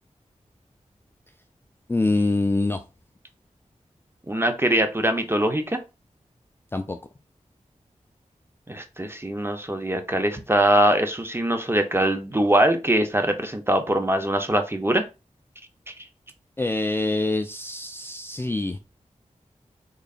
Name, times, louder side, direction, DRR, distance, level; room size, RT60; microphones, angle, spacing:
voice 1, 1.9-2.8 6.7-7.0 16.6-18.8, left 2 dB, 15° left, 0.3 m, -25 dB
voice 2, 4.3-5.8 8.7-15.0 15.9-16.0, right 1 dB, 20° right, 0.7 m, -22 dB
3.8 x 3.2 x 2.4 m
wide cardioid pair, 60°, 13 cm